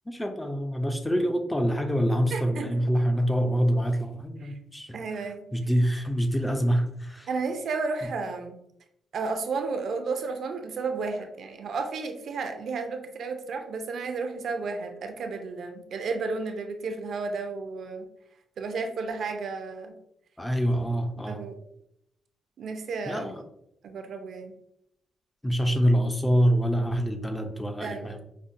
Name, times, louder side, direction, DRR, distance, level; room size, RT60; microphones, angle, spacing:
voice 1, 0.1-5.2 5.5-7.3 8.0-8.1 20.4-21.4 23.1-23.4 25.4-28.2, equal, 10° left, 5 dB, 0.3 m, -26 dB
voice 2, 2.3-2.7 4.4-4.5 4.9-5.4 7.3-8.6 9.1-18.1 18.6-20.0 21.3-21.6 22.6-23.3 23.8-24.5 27.8-28.2, right 4 dB, 60° right, 6 dB, 0.5 m, -32 dB
5.2 x 2.0 x 2.5 m, 0.78 s
cardioid pair, 150°, 0 cm